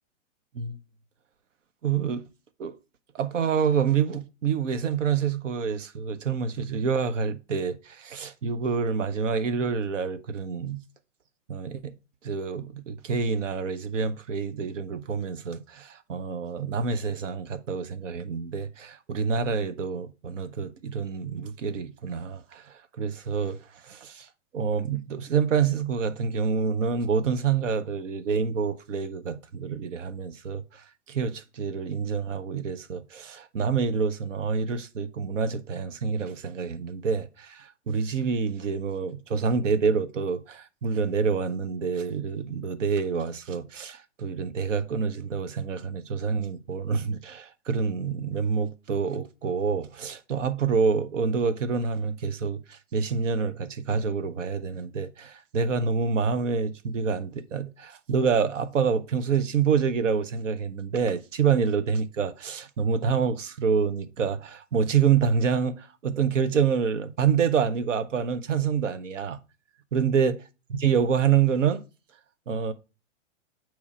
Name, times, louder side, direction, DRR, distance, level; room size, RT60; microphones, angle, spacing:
voice 1, 1.8-2.2 2.6-2.7 3.1-10.8 11.5-11.9 12.2-24.3 24.5-69.4 69.9-70.4 70.7-71.8 72.5-72.7, right 6 dB, 90° right, 0.7 m, -27 dB
8.3 x 3.1 x 4.8 m
hypercardioid pair, 125°, 36 cm